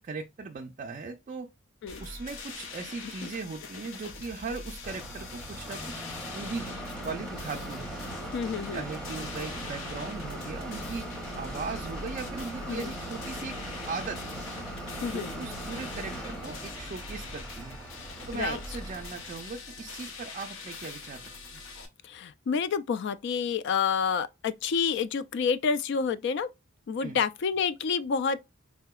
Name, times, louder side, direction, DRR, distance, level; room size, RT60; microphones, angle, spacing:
voice 1, 0.0-1.5 2.0-6.0 6.3-6.7 7.0-7.9 8.7-11.1 11.3-13.6 13.9-14.2 15.1-17.8 18.3-21.2 21.5-21.6 27.0-27.2, right 4 dB, 40° right, 0.4 m, -38 dB
sound 1, 1.9-21.9, left 3 dB, 80° left, 0.8 m, -44 dB
sound 2, 4.8-19.5, right 1 dB, 5° left, 0.7 m, -40 dB
voice 2, 8.3-8.8 12.7-12.9 15.0-15.3 18.3-18.6 22.0-26.5 26.9-28.4, left 6 dB, 60° left, 0.3 m, -29 dB
4.0 x 2.8 x 2.3 m
head